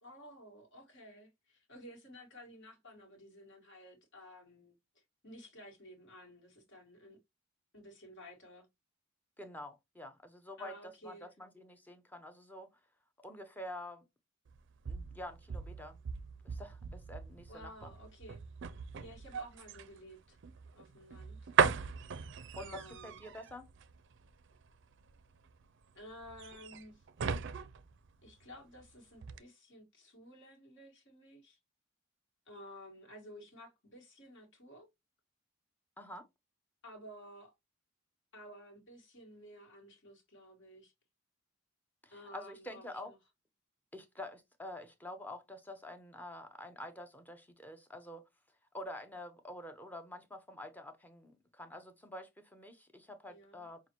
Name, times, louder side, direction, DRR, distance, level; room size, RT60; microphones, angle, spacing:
voice 1, 0.0-7.2 7.7-8.7 10.6-11.3 17.5-18.4 19.0-20.4 20.7-21.5 22.6-23.2 25.9-27.0 28.2-31.6 32.5-34.9 36.8-37.5 38.3-40.9 42.1-43.2 53.3-53.7, equal, 60° left, 1.5 m, -53 dB
voice 2, 9.4-12.7 13.2-14.0 14.9-16.0 16.4-17.9 22.6-23.7 36.0-36.3 42.0-43.1 43.9-48.3 48.7-53.8, left 1 dB, 10° left, 0.6 m, -47 dB
sound 1, 14.5-28.8 29.2-29.4, right 6 dB, 60° right, 0.4 m, -38 dB
5.6 x 2.4 x 2.9 m
head